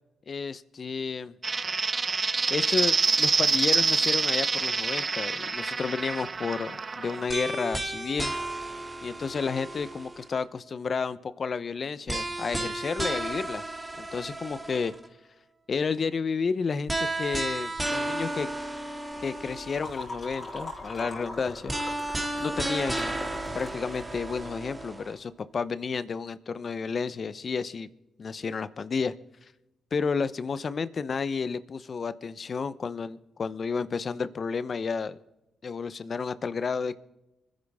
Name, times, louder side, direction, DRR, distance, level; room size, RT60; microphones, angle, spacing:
voice 1, 0.3-1.3 2.5-8.3 9.0-13.6 14.0-14.9 15.7-18.5 19.2-21.7 22.4-23.1 23.5-27.9 28.2-29.1 29.9-35.2 35.6-37.0, left 5 dB, 50° left, 15 dB, 0.8 m, -31 dB
sound 1, 1.4-7.2, right 4 dB, 40° right, 0.6 m, -26 dB
sound 2, 7.3-10.4 12.1-15.1 16.9-20.0 21.7-25.1, right 2 dB, 20° right, 2.3 m, -33 dB
sound 3, 19.1-24.4, left 2 dB, 35° left, 3.7 m, -41 dB
25.0 x 10.5 x 3.7 m, 0.99 s
supercardioid pair, 55°, 0 cm